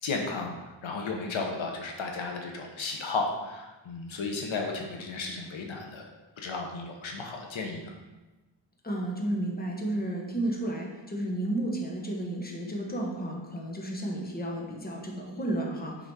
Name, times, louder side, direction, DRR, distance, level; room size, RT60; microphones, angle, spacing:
voice 1, 0.0-6.1 6.4-7.9, left 3 dB, 90° left, 1 dB, 1.0 m, -34 dB
voice 2, 8.8-16.0, right 1 dB, 20° left, -1 dB, 1.1 m, -32 dB
6.1 x 4.0 x 4.8 m, 1.1 s
wide cardioid pair, 100°, 45 cm